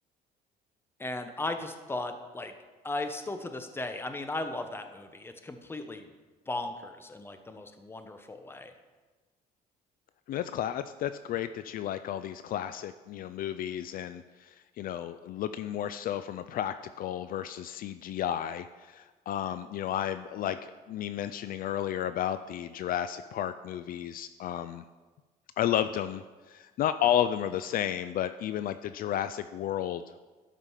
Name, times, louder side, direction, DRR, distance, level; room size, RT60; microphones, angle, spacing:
voice 1, 1.0-2.5 2.8-6.1 6.5-8.7, left 2 dB, 15° left, 7 dB, 0.9 m, -36 dB
voice 2, 10.3-24.8 25.6-26.2 26.5-30.2, left 10 dB, 60° left, 12 dB, 0.4 m, -32 dB
12.5 x 5.1 x 5.7 m, 1.3 s
cardioid pair, 110°, 17 cm